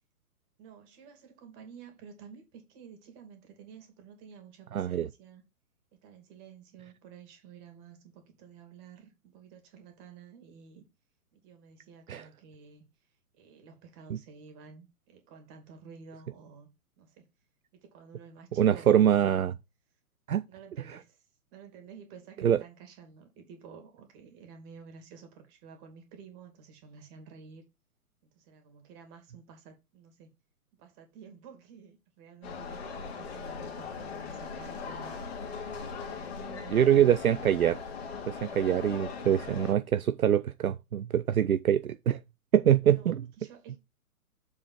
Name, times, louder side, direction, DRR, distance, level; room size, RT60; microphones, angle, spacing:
voice 1, 0.6-5.4 5.9-10.8 11.3-12.9 13.3-16.7 17.0-17.3 17.7-19.5 20.5-21.3 21.5-27.6 28.2-30.3 30.8-35.4 35.9-37.7 38.8-38.9 42.9-43.8, right 6 dB, 25° right, 2.5 m, -52 dB
voice 2, 4.7-5.1 12.1-12.2 18.6-19.5 20.3-20.4 22.4-22.6 36.7-37.8 38.3-42.2 42.5-43.3, right 10 dB, 70° right, 0.6 m, -24 dB
sound 1, 32.4-39.7, left 5 dB, 45° left, 2.4 m, -39 dB
7.1 x 4.9 x 4.3 m
figure-of-eight pair, 125°, 44 cm